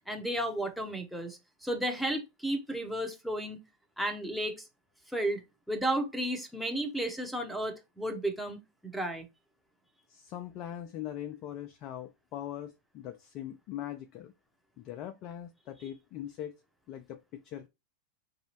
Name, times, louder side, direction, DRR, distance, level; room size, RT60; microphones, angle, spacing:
voice 1, 0.1-3.6 4.0-4.6 5.1-5.4 5.7-9.3, right 1 dB, ahead, 0.9 m, -33 dB
voice 2, 10.1-14.3 14.8-16.5 16.9-17.7, left 11 dB, 40° left, 0.4 m, -41 dB
4.7 x 2.7 x 2.9 m
figure-of-eight pair, 90°, 0 cm